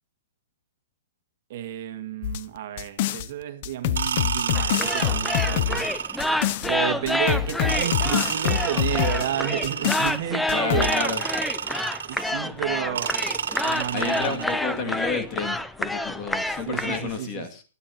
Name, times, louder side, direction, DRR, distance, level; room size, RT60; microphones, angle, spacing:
voice 1, 1.5-11.0 12.0-13.2 13.6-14.9 16.7-17.5, right 11 dB, 55° right, 1.8 m, -31 dB
sound 1, 2.2-3.3 3.6-6.7 7.1-9.3 9.6-10.1 10.5-10.9, left 13 dB, 45° left, 0.6 m, -26 dB
sound 2, 4.0-6.5 7.7-10.3 10.8-12.4 13.0-14.6, right 7 dB, 90° right, 1.7 m, -30 dB
sound 3, 4.5-17.2, left 1 dB, 5° left, 0.5 m, -28 dB
voice 2, 10.5-11.2 13.9-17.6, left 5 dB, 30° left, 2.2 m, -31 dB
28.0 x 9.8 x 2.9 m
hypercardioid pair, 155°, 0 cm